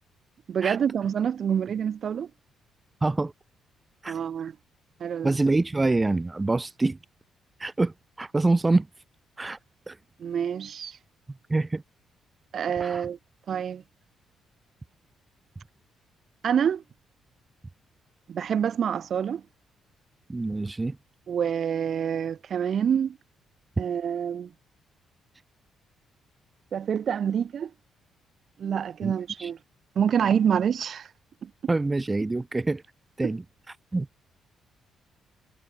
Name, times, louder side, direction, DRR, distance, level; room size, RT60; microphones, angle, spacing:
voice 1, 0.5-2.3 4.1-4.5 5.0-5.4 10.2-11.0 12.5-13.2 13.5-13.8 16.4-16.8 18.3-19.4 21.3-23.2 23.8-24.5 26.7-27.7 28.6-29.6 29.9-31.1 31.4-31.7 33.2-33.3, right 8 dB, 55° right, 7.8 m, -27 dB
voice 2, 3.0-3.3 4.0-4.2 5.2-7.0 7.6-8.9 9.4-9.6 9.9-10.0 11.5-11.8 12.8-13.1 20.3-21.0 29.0-29.1 29.4-29.5 31.7-32.8 33.2-33.4 33.9-34.1, right 2 dB, 20° right, 5.8 m, -25 dB
cardioid pair, 90°, 0 cm